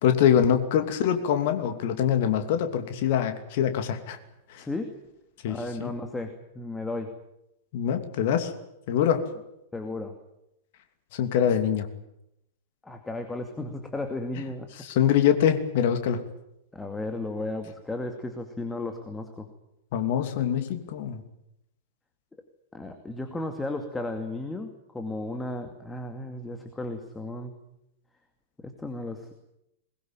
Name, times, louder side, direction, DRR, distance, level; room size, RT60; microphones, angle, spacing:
voice 1, 0.0-4.2 4.5-4.6 5.4-5.9 7.7-8.5 8.9-9.3 11.1-11.9 14.8-16.3 19.9-21.2, left 9 dB, 50° left, 7 dB, 2.7 m, -24 dB
voice 2, 4.6-5.0 5.4-7.1 9.7-10.1 12.8-14.7 16.7-19.5 22.7-27.6 28.6-29.3, left 2 dB, 10° left, 5 dB, 2.4 m, -34 dB
21.5 x 21.5 x 8.9 m, 0.84 s
figure-of-eight pair, 95°, 0 cm